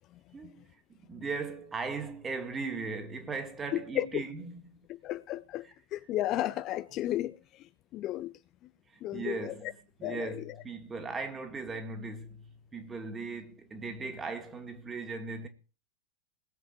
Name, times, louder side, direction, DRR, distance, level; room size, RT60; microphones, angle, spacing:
voice 1, 0.3-0.6 0.9-4.9 8.9-15.5, right 4 dB, 15° right, 2.5 m, -38 dB
voice 2, 5.0-5.7 5.9-8.3 8.6-8.7 9.0-9.7 10.0-10.6, left 14 dB, 35° left, 0.6 m, -34 dB
19.5 x 7.9 x 4.6 m
figure-of-eight pair, 90°, 0 cm